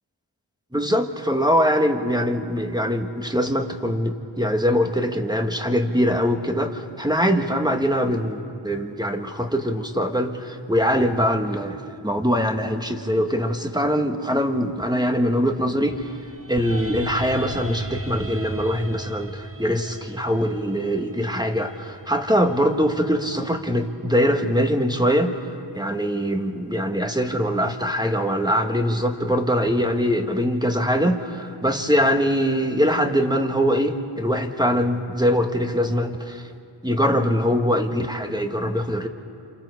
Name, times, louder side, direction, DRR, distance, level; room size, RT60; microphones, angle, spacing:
voice 1, 0.7-16.2 16.5-36.5 36.8-39.1, equal, 10° right, 5 dB, 1.6 m, -22 dB
sound 1, 15.9-24.0, right 2 dB, 25° right, 1.1 m, -37 dB
28.0 x 27.0 x 4.8 m, 2.6 s
wide cardioid pair, 40°, 50 cm